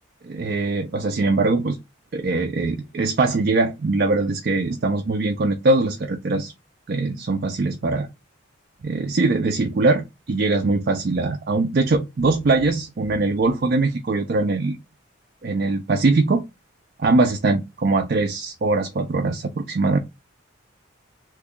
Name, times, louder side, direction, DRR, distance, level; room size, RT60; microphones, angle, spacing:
voice 1, 0.2-1.8 2.1-6.5 6.9-8.1 8.8-14.8 15.4-16.4 17.0-20.0, right 3 dB, 50° right, 0.4 m, -22 dB
3.0 x 2.2 x 3.6 m
head